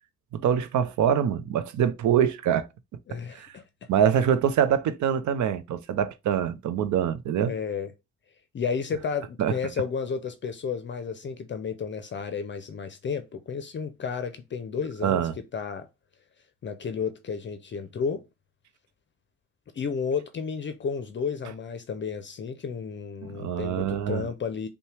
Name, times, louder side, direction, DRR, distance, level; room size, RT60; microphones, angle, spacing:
voice 1, 0.3-2.7 3.3-3.5 3.9-7.5 9.4-9.5 15.0-15.3 23.3-24.3, right 9 dB, 70° right, 0.6 m, -24 dB
voice 2, 3.1-3.6 7.5-7.9 8.5-15.2 15.5-15.9 16.6-18.3 19.7-24.7, left 6 dB, 40° left, 0.6 m, -32 dB
5.5 x 2.2 x 3.2 m
cardioid pair, 90°, 30 cm